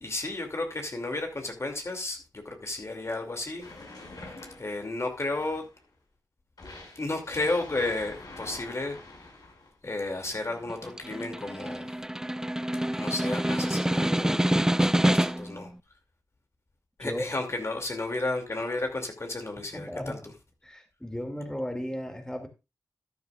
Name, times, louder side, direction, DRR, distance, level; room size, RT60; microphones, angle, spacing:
voice 1, 0.0-3.7 4.6-5.7 7.0-9.0 9.8-11.9 12.9-15.7 17.0-20.2, left 2 dB, 45° left, 2.7 m, -33 dB
sound 1, 3.6-5.8 6.6-9.7 10.2-10.8, left 2 dB, 75° left, 6.1 m, -46 dB
Snare drum, 10.7-15.6, right 1 dB, 10° right, 0.4 m, -26 dB
voice 2, 19.7-20.2 20.6-22.5, equal, 10° left, 2.5 m, -35 dB
13.5 x 9.8 x 2.5 m
cardioid pair, 45°, 7 cm